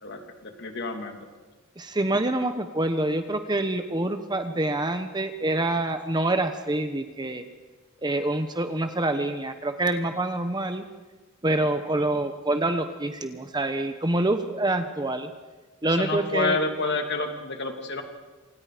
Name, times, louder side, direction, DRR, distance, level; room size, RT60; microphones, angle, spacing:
voice 1, 0.0-1.2 16.0-18.0, left 3 dB, 55° left, 4 dB, 3.1 m, -29 dB
voice 2, 1.8-7.5 8.0-10.8 11.4-15.3 15.8-16.6, right 2 dB, 20° right, 8 dB, 1.0 m, -26 dB
27.5 x 27.0 x 5.1 m, 1.3 s
head